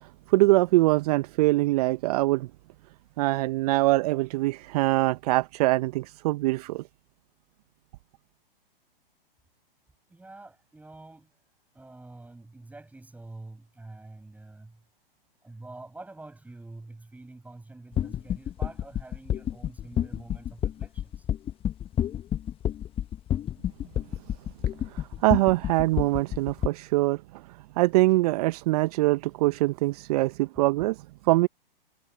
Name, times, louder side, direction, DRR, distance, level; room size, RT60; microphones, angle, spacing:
voice 1, 0.3-2.5 3.2-6.8 24.9-27.4 27.8-31.5, right 20 dB, 40° right, 1.0 m, -23 dB
voice 2, 10.1-11.3 11.7-14.8 15.4-21.3, right 2 dB, 5° right, 7.7 m, -46 dB
sound 1, 17.9-26.7, left 11 dB, 20° left, 1.3 m, -29 dB
figure-of-eight pair, 115°, 29 cm